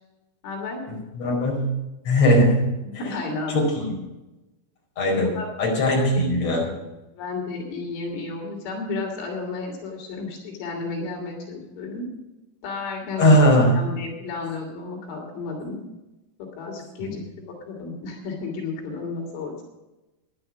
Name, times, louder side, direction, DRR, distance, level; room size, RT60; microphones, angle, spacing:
voice 1, 0.4-0.8 2.9-3.9 5.4-5.5 5.9-6.2 7.1-12.1 12.6-13.4 13.7-15.8 16.6-17.2 17.7-19.6, left 3 dB, 85° left, 0 dB, 5.5 m, -32 dB
voice 2, 1.2-1.7 2.1-2.6 3.5-4.0 5.0-5.3 5.6-6.7 13.2-13.8 17.0-17.2, equal, 35° left, -2 dB, 5.6 m, -19 dB
12.5 x 11.0 x 6.4 m, 1.0 s
omnidirectional pair, 5.4 m